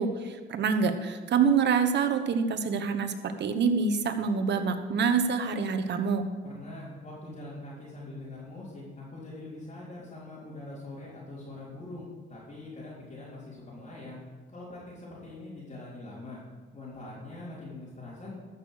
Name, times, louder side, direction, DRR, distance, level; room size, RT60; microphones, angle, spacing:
voice 1, 0.0-3.1 3.4-6.3, right 5 dB, 60° right, 7 dB, 1.2 m, -26 dB
voice 2, 6.4-14.2 14.5-16.4 16.7-18.4, left 2 dB, 35° left, -10 dB, 3.9 m, -43 dB
14.0 x 6.6 x 6.6 m, 1.5 s
cardioid pair, 90°, 20 cm